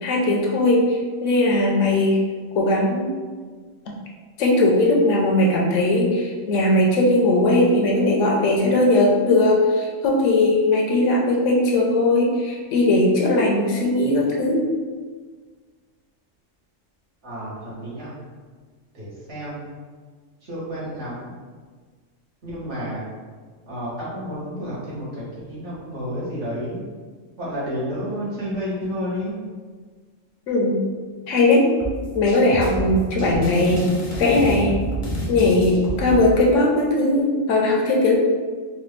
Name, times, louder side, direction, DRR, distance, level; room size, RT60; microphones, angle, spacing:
voice 1, 0.0-2.2 2.5-3.1 4.4-14.6 30.5-30.8 31.3-31.7 32.1-33.8 34.2-34.8 35.3-38.1, left 2 dB, 75° left, -1 dB, 1.0 m, -19 dB
voice 2, 17.2-18.1 18.9-19.7 20.4-21.3 22.4-23.1 23.7-26.8 27.4-29.3, equal, 60° right, -8 dB, 1.5 m, -30 dB
sound 1, 31.8-36.2, equal, 35° left, 0.5 m, -29 dB
4.1 x 2.2 x 3.1 m, 1.5 s
omnidirectional pair, 1.3 m